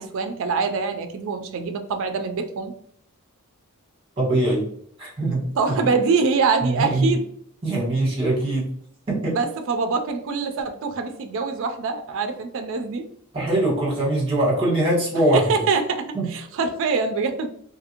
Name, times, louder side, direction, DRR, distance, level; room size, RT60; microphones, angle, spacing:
voice 1, 0.0-2.7 5.6-7.2 9.3-13.0 15.3-17.5, right 4 dB, 60° right, 6 dB, 0.4 m, -24 dB
voice 2, 4.2-4.6 5.0-5.4 6.6-7.1 7.6-8.7 9.1-9.4 13.3-15.5 16.1-16.3, right 1 dB, 25° right, -4 dB, 1.3 m, -22 dB
2.7 x 2.5 x 2.8 m, 0.63 s
head